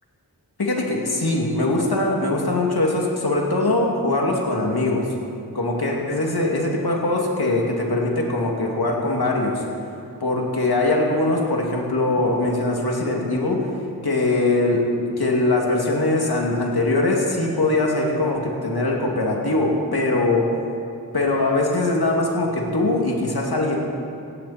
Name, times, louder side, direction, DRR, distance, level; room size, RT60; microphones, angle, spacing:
voice 1, 0.6-5.1 5.5-9.6 10.2-13.7 14.0-20.6 21.1-23.8, left 2 dB, 75° left, -1 dB, 2.7 m, -22 dB
17.5 x 17.0 x 4.4 m, 2.6 s
wide cardioid pair, 60°, 38 cm